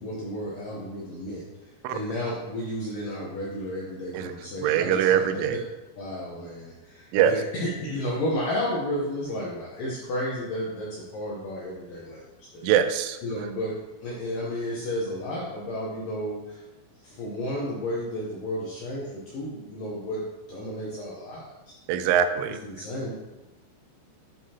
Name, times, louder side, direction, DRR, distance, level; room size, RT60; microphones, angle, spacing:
voice 1, 0.0-1.4 1.9-5.6 6.0-12.7 13.2-13.8 14.0-16.6 17.0-20.2 20.5-21.5 22.5-23.1, left 1 dB, 75° left, -5 dB, 2.0 m, -32 dB
voice 2, 4.6-5.6 7.1-7.4 12.6-13.2 21.9-22.6, right 9 dB, 90° right, 10 dB, 3.0 m, -22 dB
11.0 x 4.9 x 2.9 m, 1.1 s
omnidirectional pair, 5.3 m